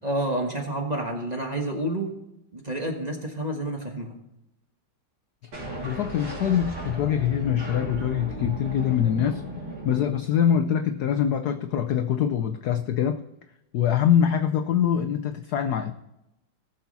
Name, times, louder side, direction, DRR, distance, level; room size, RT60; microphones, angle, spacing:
voice 1, 0.0-2.1 2.5-4.2, right 1 dB, 25° right, 1 dB, 1.2 m, -29 dB
voice 2, 5.4-9.4 9.8-13.2 13.7-15.9, left 9 dB, 70° left, 7 dB, 0.9 m, -24 dB
sound 1, 5.5-10.7, right 1 dB, 75° right, 4.2 m, -36 dB
18.0 x 7.1 x 4.1 m, 0.90 s
omnidirectional pair, 2.3 m